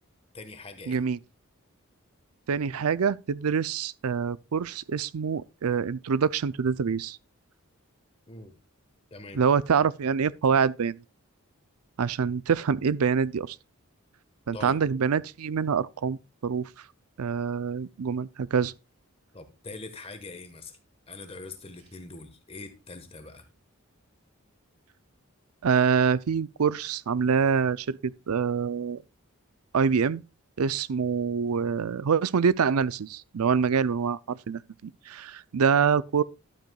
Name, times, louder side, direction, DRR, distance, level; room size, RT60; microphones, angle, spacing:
voice 1, 0.3-1.0 8.3-8.6 9.1-9.4 14.5-14.8 19.3-20.8 21.1-23.5, left 3 dB, 25° left, 1.4 m, -43 dB
voice 2, 0.9-1.2 2.5-7.2 9.3-11.0 12.0-13.6 14.5-16.8 17.2-18.7 25.6-29.0 29.7-30.2 30.6-36.2, right 6 dB, 90° right, 0.5 m, -25 dB
12.0 x 8.1 x 2.3 m
head